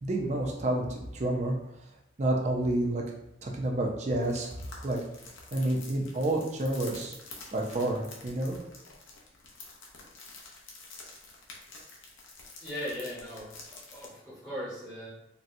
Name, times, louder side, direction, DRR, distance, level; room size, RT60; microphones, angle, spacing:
voice 1, 0.0-1.5 2.2-3.0 3.4-5.0 5.5-7.1 7.5-8.6, right 1 dB, 35° right, 0 dB, 0.5 m, -29 dB
sound 1, 4.2-14.1, left 3 dB, 80° left, 0.7 m, -48 dB
voice 2, 12.6-15.1, equal, 10° left, -10 dB, 0.8 m, -39 dB
4.0 x 2.2 x 2.6 m, 0.84 s
head